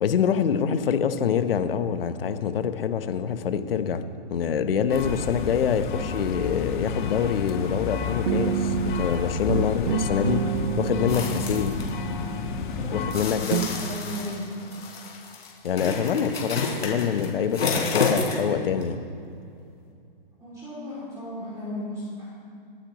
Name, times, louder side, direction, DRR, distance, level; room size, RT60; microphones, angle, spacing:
voice 1, 0.0-4.0 4.3-10.4 10.8-11.7 12.9-13.8 15.6-19.0, left 7 dB, 70° left, 10 dB, 1.0 m, -25 dB
sound 1, 4.9-13.1, left 5 dB, 55° left, 1.4 m, -31 dB
sound 2, 8.3-9.1 9.5-13.1 13.5-13.8, right 10 dB, 55° right, 0.6 m, -29 dB
sound 3, 11.1-11.9 13.1-18.5 18.8-18.9, left 4 dB, 90° left, 3.7 m, -29 dB
voice 2, 12.7-13.2 13.4-14.4 20.4-22.3, left 1 dB, 10° right, -9 dB, 2.7 m, -36 dB
23.0 x 9.7 x 3.1 m, 2.4 s
hypercardioid pair, 145°, 30 cm